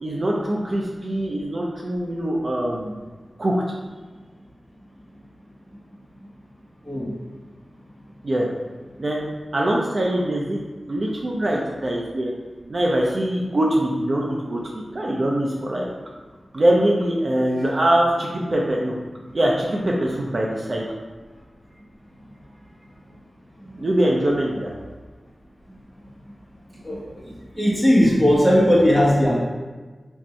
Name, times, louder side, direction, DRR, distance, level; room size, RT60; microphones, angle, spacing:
voice 1, 0.0-2.9 3.4-3.5 8.2-8.5 9.0-9.2 9.5-10.6 10.9-12.3 12.7-15.9 16.5-19.0 19.3-20.9 23.8-24.7, right 1 dB, 55° right, -2 dB, 0.5 m, -23 dB
voice 2, 27.5-29.4, equal, 5° right, -5 dB, 1.3 m, -17 dB
3.5 x 2.6 x 4.3 m, 1.3 s
wide cardioid pair, 60°, 0 cm